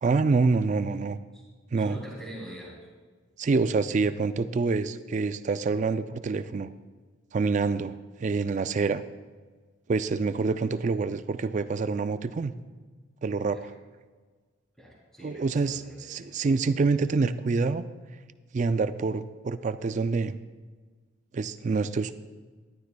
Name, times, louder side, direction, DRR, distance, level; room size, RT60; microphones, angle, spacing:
voice 1, 0.0-1.2 1.7-2.0 3.4-6.7 7.3-9.0 9.9-12.5 13.2-13.7 15.2-17.8 18.5-20.4 21.3-22.1, right 4 dB, 35° right, 13 dB, 0.3 m, -26 dB
voice 2, 1.8-2.8 13.5-13.7 14.8-16.2, right 1 dB, 5° left, -6 dB, 3.0 m, -43 dB
13.5 x 11.5 x 2.2 m, 1.4 s
head